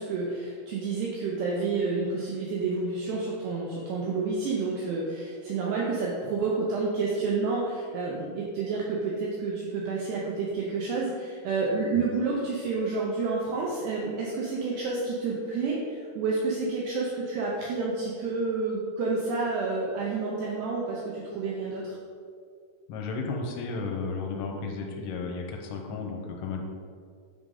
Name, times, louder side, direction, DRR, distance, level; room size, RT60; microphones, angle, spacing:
voice 1, 0.0-22.0, right 4 dB, 90° right, -3 dB, 2.4 m, -29 dB
voice 2, 22.9-26.6, left 4 dB, 80° left, 2 dB, 3.3 m, -33 dB
9.2 x 3.9 x 5.2 m, 2.2 s
omnidirectional pair, 6.0 m